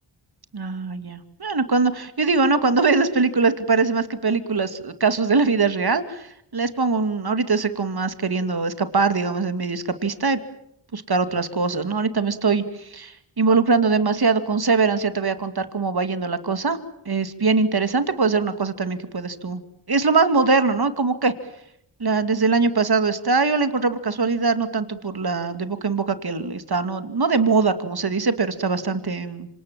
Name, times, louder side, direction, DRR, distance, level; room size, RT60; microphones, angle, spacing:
voice 1, 0.5-10.4 10.9-16.8 17.1-19.6 19.9-21.3 22.0-29.5, right 4 dB, 50° right, 10 dB, 2.5 m, -22 dB
27.0 x 26.5 x 7.6 m, 0.72 s
cardioid pair, 45°, 48 cm